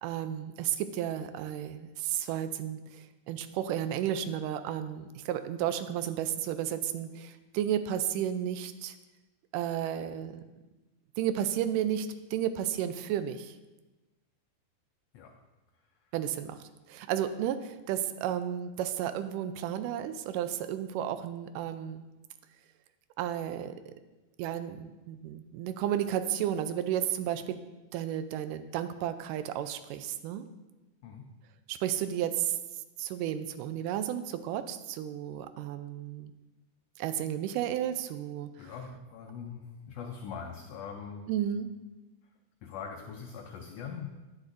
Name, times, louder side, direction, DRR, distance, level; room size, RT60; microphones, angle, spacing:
voice 1, 0.0-9.0 9.5-10.4 11.2-13.6 16.1-22.0 23.2-23.9 24.4-27.6 27.9-30.5 31.7-32.6 33.0-36.3 37.0-38.5 41.3-41.7, right 10 dB, 85° right, 11 dB, 2.1 m, -33 dB
voice 2, 15.8-16.1 31.0-31.3 38.6-41.3 42.6-44.1, left 6 dB, 90° left, 2 dB, 1.4 m, -42 dB
10.5 x 9.8 x 2.6 m, 1.1 s
omnidirectional pair, 3.7 m